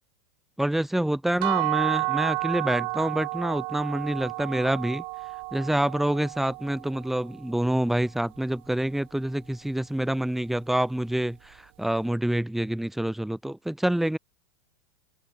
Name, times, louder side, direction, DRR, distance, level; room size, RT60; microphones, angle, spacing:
voice 1, 0.6-5.0 5.5-14.2, right 1 dB, ahead, 0.9 m, -27 dB
sound 1, 1.4-7.2, right 28 dB, 50° right, 1.6 m, -31 dB
hypercardioid pair, 130°, 12 cm